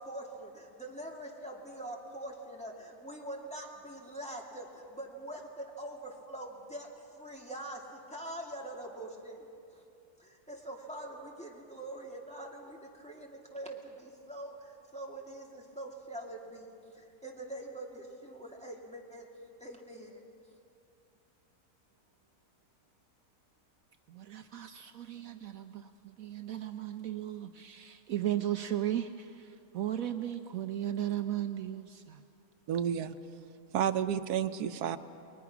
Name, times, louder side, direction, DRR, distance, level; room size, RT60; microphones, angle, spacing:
voice 1, 0.0-9.8 10.2-19.3 19.6-20.2, right 1 dB, 5° left, -2 dB, 2.4 m, -44 dB
voice 2, 24.1-32.2, right 11 dB, 70° right, 8 dB, 1.1 m, -36 dB
voice 3, 32.7-33.2 33.7-35.0, right 9 dB, 90° right, 10 dB, 1.3 m, -30 dB
29.5 x 21.0 x 6.0 m, 2.6 s
omnidirectional pair, 1.6 m